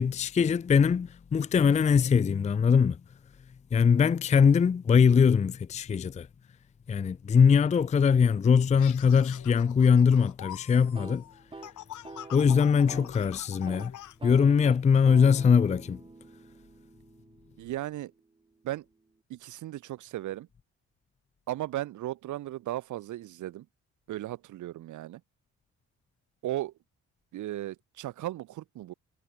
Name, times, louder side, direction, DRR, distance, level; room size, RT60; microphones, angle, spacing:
voice 1, 0.0-3.0 3.7-6.3 6.9-11.2 12.3-13.9 14.2-16.0, left 6 dB, 25° left, 0.5 m, -22 dB
sound 1, 8.8-14.2, left 12 dB, 75° left, 5.9 m, -45 dB
sound 2, 10.8-13.2 13.5-13.9 14.2-18.1, right 3 dB, 15° right, 1.2 m, -47 dB
voice 2, 17.6-18.1 18.6-18.8 19.3-20.5 21.5-23.6 24.1-25.2 26.4-26.7 27.3-28.9, right 14 dB, 75° right, 1.3 m, -36 dB
cardioid pair, 90°, 30 cm